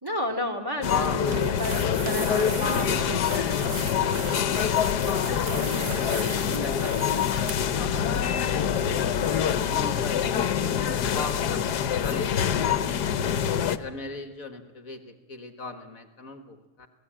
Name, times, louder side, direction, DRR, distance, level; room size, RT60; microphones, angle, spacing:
voice 1, 0.0-3.2 5.2-6.0, left 1 dB, 15° right, 3 dB, 2.2 m, -32 dB
sound 1, 0.8-13.8, left 8 dB, 75° left, 1.5 m, -25 dB
voice 2, 0.8-2.9 5.3-9.0 9.7-12.9 13.8-16.9, left 3 dB, 55° left, 7 dB, 1.8 m, -39 dB
sound 2, 1.2-7.8, right 5 dB, 45° right, 1.2 m, -38 dB
27.5 x 17.5 x 8.7 m, 1.2 s
omnidirectional pair, 1.8 m